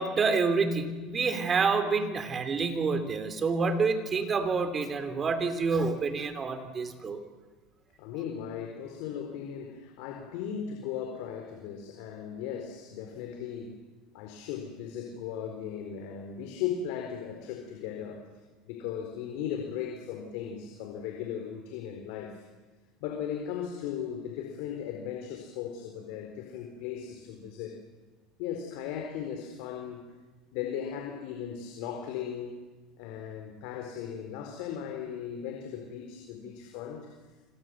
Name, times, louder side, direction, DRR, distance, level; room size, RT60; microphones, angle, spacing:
voice 1, 0.0-7.2, right 4 dB, 25° right, 8 dB, 3.6 m, -28 dB
voice 2, 8.0-13.8 14.1-18.3 18.6-22.4 23.0-27.7 28.4-30.0 30.5-32.6 33.0-37.1, left 8 dB, 70° left, 3 dB, 4.3 m, -37 dB
27.5 x 27.0 x 7.9 m, 1.2 s
supercardioid pair, 130°, 0 cm